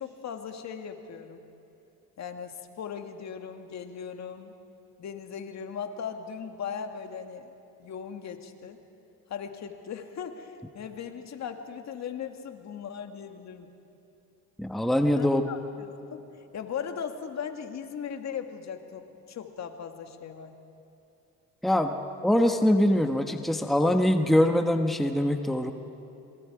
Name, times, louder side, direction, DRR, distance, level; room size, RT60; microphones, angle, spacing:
voice 1, 0.0-1.4 2.2-4.5 5.0-7.5 7.8-8.8 9.3-13.7 15.1-16.3 16.5-20.5, left 7 dB, 45° left, 6 dB, 1.9 m, -38 dB
voice 2, 14.6-15.4 21.6-21.9 22.2-25.7, left 1 dB, ahead, 5 dB, 1.1 m, -23 dB
27.0 x 23.0 x 4.8 m, 2.9 s
supercardioid pair, 95°, 36 cm